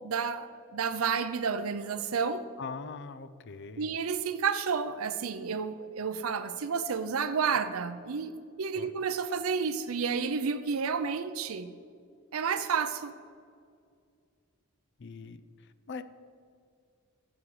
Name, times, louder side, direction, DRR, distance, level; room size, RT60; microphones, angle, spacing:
voice 1, 0.0-2.5 3.8-11.7 12.3-13.1, right 6 dB, 80° right, 11 dB, 0.6 m, -31 dB
voice 2, 2.6-3.9 8.7-8.9 15.0-15.4 15.9-16.0, left 4 dB, 55° left, 14 dB, 0.5 m, -41 dB
14.5 x 7.4 x 4.8 m, 2.2 s
head